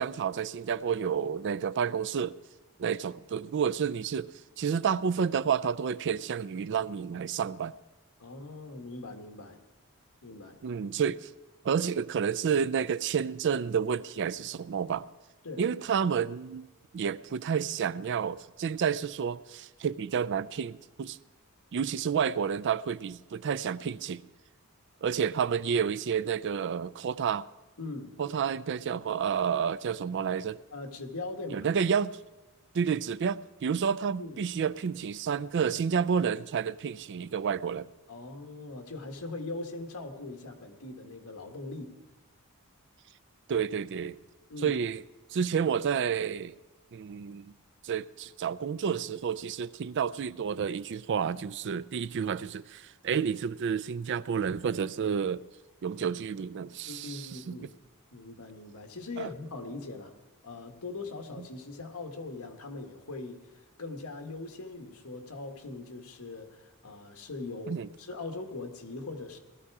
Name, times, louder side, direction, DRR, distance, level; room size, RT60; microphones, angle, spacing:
voice 1, 0.0-2.4 2.8-7.7 10.6-11.3 11.6-15.1 15.6-16.7 16.9-21.2 21.7-24.2 25.0-27.5 28.2-30.6 31.5-32.2 32.7-37.9 43.5-44.2 44.6-45.0 45.3-46.5 46.9-47.5 47.8-55.4 55.8-57.6 59.2-59.3 61.4-61.5 67.7-67.9, right 7 dB, 55° right, 0.4 m, -30 dB
voice 2, 8.2-9.6 10.2-10.6 15.4-15.6 27.8-28.1 30.7-31.7 34.2-34.4 38.1-41.9 44.5-44.8 56.8-57.7 58.1-60.1 60.4-69.4, left 3 dB, 75° left, 1.6 m, -41 dB
18.5 x 13.0 x 4.8 m
head